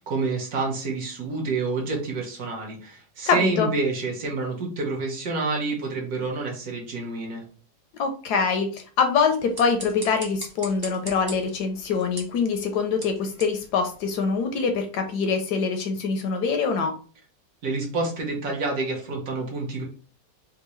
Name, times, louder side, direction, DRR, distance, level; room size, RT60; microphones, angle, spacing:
voice 1, 0.0-7.4 17.6-19.8, right 3 dB, 60° right, 0 dB, 1.3 m, -28 dB
voice 2, 3.3-3.7 8.0-17.0, left 5 dB, 75° left, 5 dB, 1.0 m, -24 dB
sound 1, 9.3-14.6, right 2 dB, 35° right, 0.3 m, -42 dB
3.6 x 2.6 x 3.0 m, 0.39 s
omnidirectional pair, 2.0 m